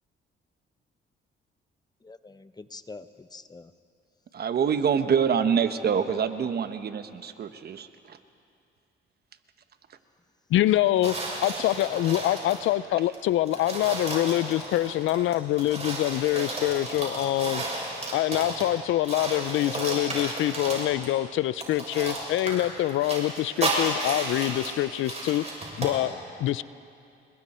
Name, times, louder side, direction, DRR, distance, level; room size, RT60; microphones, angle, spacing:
voice 1, 2.0-3.7, left 3 dB, 20° left, 11 dB, 0.9 m, -45 dB
voice 2, 4.3-8.2 11.9-12.1, right 7 dB, 55° right, 10 dB, 1.1 m, -26 dB
voice 3, 10.5-11.1 11.4-17.6 18.1-25.4 25.8-26.1 26.4-26.6, left 14 dB, 80° left, 17 dB, 0.5 m, -25 dB
sound 1, 11.0-12.7 13.1-13.2 13.5-18.8 19.0-21.1 21.6-26.0, right 2 dB, 35° right, 6.9 m, -33 dB
30.0 x 22.0 x 4.4 m, 2.5 s
cardioid pair, 90°, 20 cm